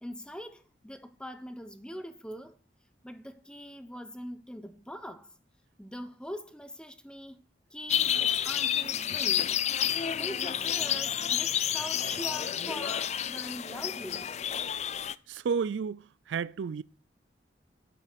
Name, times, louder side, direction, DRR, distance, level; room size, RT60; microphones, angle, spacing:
voice 1, 0.0-2.6 3.0-5.3 5.8-7.4 7.7-9.6 10.0-14.4, equal, 5° left, 0.9 m, -42 dB
sound 1, 7.9-15.1, left 9 dB, 40° left, 0.4 m, -30 dB
voice 2, 15.3-16.8, right 6 dB, 90° right, 0.4 m, -32 dB
8.7 x 7.8 x 6.0 m
head